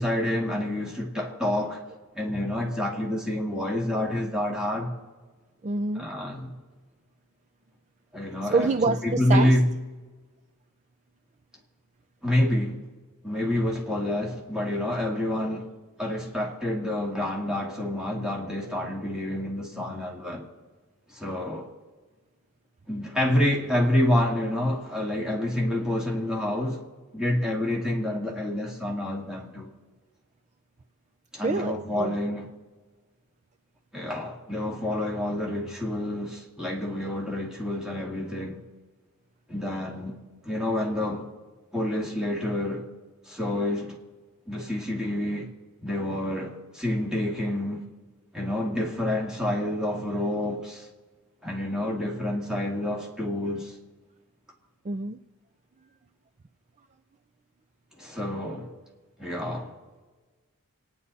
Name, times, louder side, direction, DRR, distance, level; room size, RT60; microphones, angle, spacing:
voice 1, 0.0-1.8 2.1-4.9 6.0-6.5 8.1-9.7 12.2-12.8 13.2-15.7 16.0-20.5 21.1-21.7 22.9-26.8 27.1-29.7 31.3-32.5 33.9-38.6 39.5-40.2 40.4-41.3 41.7-42.9 43.3-44.0 44.5-45.5 45.8-47.9 48.3-50.9 51.4-53.7 58.0-58.7 59.2-59.8, left 1 dB, 5° right, 2.3 m, -28 dB
voice 2, 5.6-6.1 8.5-9.6 31.4-32.2 54.8-55.2, right 4 dB, 30° right, 0.5 m, -26 dB
27.5 x 9.8 x 4.2 m
head